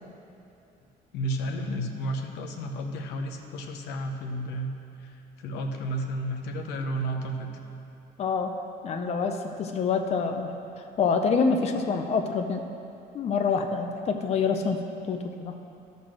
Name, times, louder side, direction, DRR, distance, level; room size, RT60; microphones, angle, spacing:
voice 1, 1.1-4.7 5.0-5.1 5.4-7.5, right 1 dB, 85° left, 3 dB, 0.9 m, -32 dB
voice 2, 8.2-8.6 8.8-10.5 11.0-12.7 13.1-15.6, left 5 dB, 40° left, 5 dB, 0.5 m, -26 dB
11.5 x 4.1 x 6.4 m, 2.7 s
cardioid pair, 110°, 17 cm